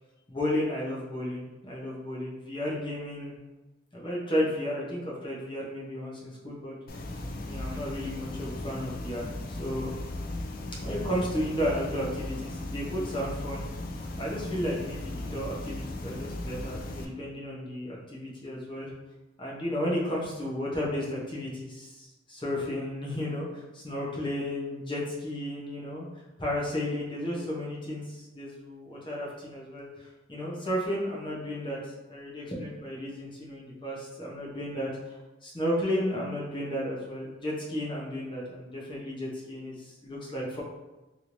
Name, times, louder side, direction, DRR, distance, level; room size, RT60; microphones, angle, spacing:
voice 1, 0.3-3.3 3.9-7.0 7.5-10.0 10.8-13.6 13.9-18.9 19.4-26.0 26.4-40.6, equal, 25° left, -5 dB, 0.7 m, -33 dB
sound 1, 6.9-17.0, left 1 dB, 50° left, 0.4 m, -37 dB
3.1 x 3.0 x 2.5 m, 1.1 s
head